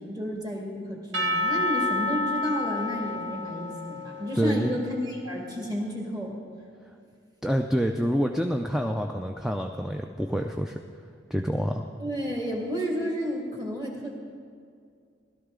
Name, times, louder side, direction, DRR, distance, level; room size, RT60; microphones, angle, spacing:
voice 1, 0.0-6.4 12.0-14.1, equal, 20° right, -2 dB, 2.1 m, -31 dB
Percussion / Church bell, 1.1-5.0, left 2 dB, 65° right, 1.1 m, -30 dB
voice 2, 4.4-4.8 7.4-10.8 11.3-11.9, equal, ahead, 3 dB, 0.3 m, -27 dB
16.5 x 12.5 x 3.7 m, 2.3 s
head